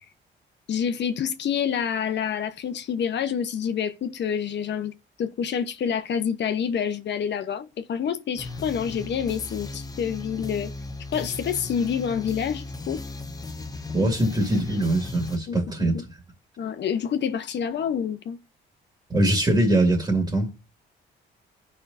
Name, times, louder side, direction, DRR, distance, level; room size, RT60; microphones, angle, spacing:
voice 1, 0.7-4.9 5.2-10.7 11.1-13.0 14.0-14.1 15.5-16.0 16.6-18.4, left 7 dB, 60° left, 1.0 m, -27 dB
sound 1, 8.4-15.4, left 3 dB, 20° left, 1.0 m, -36 dB
voice 2, 13.9-16.0 19.1-20.5, right 1 dB, 20° right, 2.1 m, -22 dB
15.5 x 5.7 x 2.7 m
cardioid pair, 90°, 20 cm